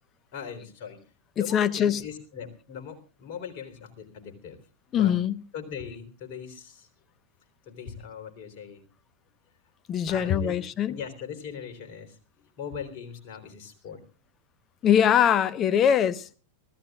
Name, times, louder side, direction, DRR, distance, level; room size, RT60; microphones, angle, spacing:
voice 1, 0.3-1.0 1.4-4.6 4.9-5.1 5.5-6.9 7.7-8.8 10.1-10.6 10.9-12.2 12.6-14.0, left 7 dB, 45° left, 3.7 m, -40 dB
voice 2, 1.4-2.0 4.9-5.4 9.9-11.0 14.8-16.4, left 9 dB, 30° left, 0.9 m, -22 dB
25.0 x 15.0 x 2.4 m
figure-of-eight pair, 90°, 0 cm